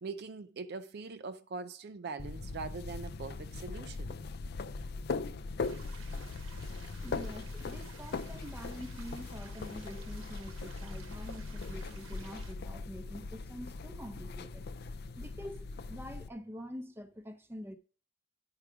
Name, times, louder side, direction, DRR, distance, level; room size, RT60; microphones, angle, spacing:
voice 1, 0.0-4.2, right 4 dB, 50° right, 0.4 m, -42 dB
sound 1, 2.2-16.3, left 3 dB, 50° left, 0.4 m, -40 dB
sound 2, 5.6-12.5, right 5 dB, 75° right, 1.1 m, -55 dB
voice 2, 7.0-14.7 15.2-17.8, equal, 10° right, 0.7 m, -46 dB
10.5 x 4.8 x 4.8 m
head